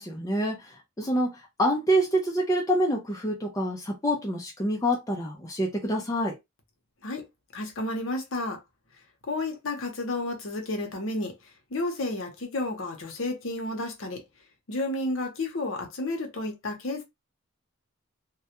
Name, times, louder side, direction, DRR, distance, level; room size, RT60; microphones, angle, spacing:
voice 1, 0.0-6.3, equal, 15° left, 0.4 m, -27 dB
voice 2, 7.5-8.6 9.2-11.3 11.7-14.2 14.7-17.0, left 2 dB, 60° left, 0.7 m, -31 dB
2.2 x 2.1 x 2.8 m
head